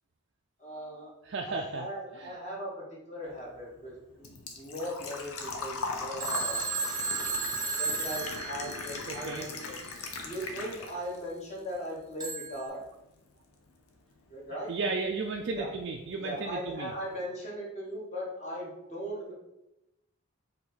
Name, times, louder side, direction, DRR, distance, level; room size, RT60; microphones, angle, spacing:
voice 1, 0.6-1.1 1.4-4.3 4.6-6.9 7.8-9.7 10.2-12.8 14.3-14.7 15.5-15.7 16.2-19.3, equal, 30° left, -4 dB, 1.2 m, -39 dB
voice 2, 1.2-1.9 2.1-2.3 9.1-9.4 14.5-16.9, right 3 dB, 50° right, 2 dB, 0.3 m, -34 dB
Engine / Trickle dribble / Fill (with liquid), 3.3-11.2 11.6-12.5 12.8-12.9 14.8-14.9 15.1-15.5 15.8-15.9 16.2-16.3, left 3 dB, 90° left, 0.7 m, -39 dB
Telephone, 6.2-9.2 12.2-12.7, right 4 dB, 20° right, 0.6 m, -33 dB
4.9 x 2.7 x 4.0 m, 0.89 s
head